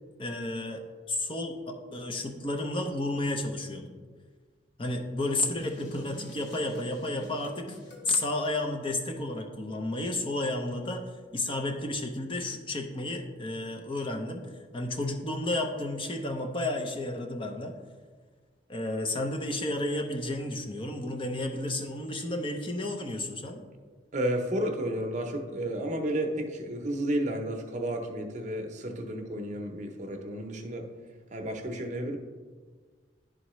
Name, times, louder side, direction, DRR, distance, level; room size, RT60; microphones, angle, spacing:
voice 1, 0.2-4.0 4.8-7.8 8.1-17.8 18.7-23.6, left 2 dB, 30° left, 4 dB, 0.6 m, -32 dB
sound 1, 5.6-8.2, left 1 dB, 75° left, 1.2 m, -47 dB
voice 2, 24.1-30.9 31.3-32.2, right 1 dB, 40° right, 3 dB, 0.7 m, -32 dB
11.0 x 3.8 x 3.1 m, 1.5 s
head